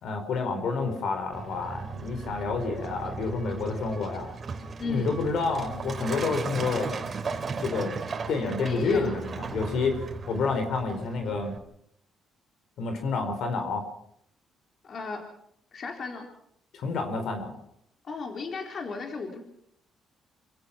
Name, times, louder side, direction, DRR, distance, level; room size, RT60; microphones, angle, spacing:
voice 1, 0.0-4.3 4.9-6.9 7.6-7.9 8.3-11.5 12.8-13.8 16.7-17.6, left 4 dB, 70° left, 6 dB, 4.6 m, -29 dB
Truck, 1.3-11.6, right 5 dB, 45° right, 3.0 m, -36 dB
voice 2, 4.8-5.1 8.6-9.1 14.8-15.2 15.7-16.2 18.1-19.4, left 4 dB, 50° left, 3 dB, 4.2 m, -35 dB
27.5 x 16.5 x 6.1 m, 0.72 s
cardioid pair, 75°, 0 cm